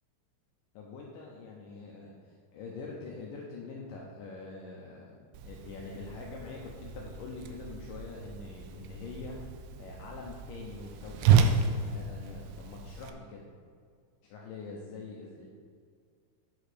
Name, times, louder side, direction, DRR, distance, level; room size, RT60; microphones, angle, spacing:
voice 1, 0.7-9.4 9.8-13.5 14.2-15.5, left 3 dB, 75° left, -2 dB, 2.1 m, -44 dB
Whoosh swoosh swish, 5.3-13.1, right 6 dB, 80° right, 2.4 m, -31 dB
8.1 x 6.3 x 5.0 m, 2.1 s
omnidirectional pair, 4.5 m